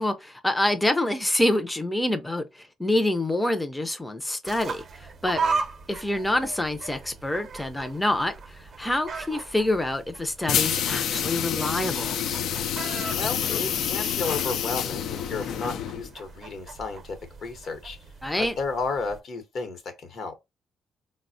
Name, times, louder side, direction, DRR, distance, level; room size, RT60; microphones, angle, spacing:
voice 1, 0.0-5.4 5.9-12.2 18.2-18.5, left 1 dB, 10° left, 0.4 m, -26 dB
sound 1, 4.4-19.2, right 4 dB, 50° right, 0.6 m, -37 dB
voice 2, 5.3-5.6 13.1-18.0 18.4-20.4, left 4 dB, 60° left, 0.8 m, -33 dB
sound 2, 10.5-16.1, left 9 dB, 75° left, 0.3 m, -28 dB
4.0 x 2.1 x 2.5 m
cardioid pair, 90°, 0 cm